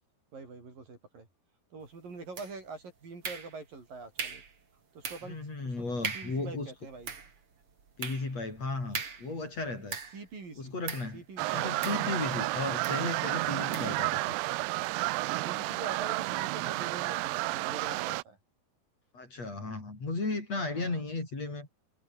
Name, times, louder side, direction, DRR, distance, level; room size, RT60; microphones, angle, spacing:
voice 1, 0.3-1.3 1.7-4.4 4.9-5.4 5.6-7.2 9.7-10.8 11.1-12.5 13.5-14.1 15.4-18.4 20.7-21.0, right 4 dB, 50° right, 7.5 m, -45 dB
sound 1, 2.4-2.8 3.2-3.8 4.2-4.6 5.0-5.4 5.7-5.8 6.0-6.4 6.9-10.3 10.9-11.2 11.8-12.4 12.8-13.1 13.7-14.0, right 5 dB, 35° right, 3.3 m, -40 dB
voice 2, 5.3-6.7 8.0-10.0 10.6-11.2 11.5-14.4 19.1-21.7, left 3 dB, 35° left, 7.6 m, -35 dB
sound 2, 11.4-18.2, right 22 dB, 80° right, 2.5 m, -31 dB
omnidirectional pair, 5.0 m